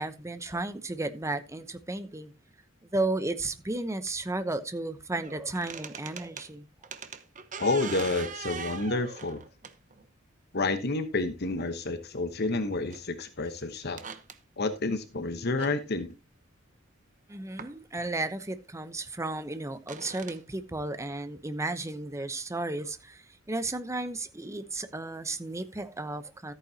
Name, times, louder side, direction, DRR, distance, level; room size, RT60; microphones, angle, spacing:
voice 1, 0.0-2.3 2.9-6.7 17.3-26.5, right 2 dB, 15° right, 0.9 m, -34 dB
sound 1, 5.2-6.5 6.8-10.1 11.2-11.3 12.9-13.0 13.4-13.5 13.8-14.4 15.6-15.7 17.6-17.7 18.4-18.5 19.8-20.4, right 6 dB, 40° right, 1.0 m, -41 dB
voice 2, 7.6-9.4 10.5-14.0 14.6-16.1, left 3 dB, 55° left, 1.1 m, -29 dB
14.0 x 9.0 x 2.8 m
head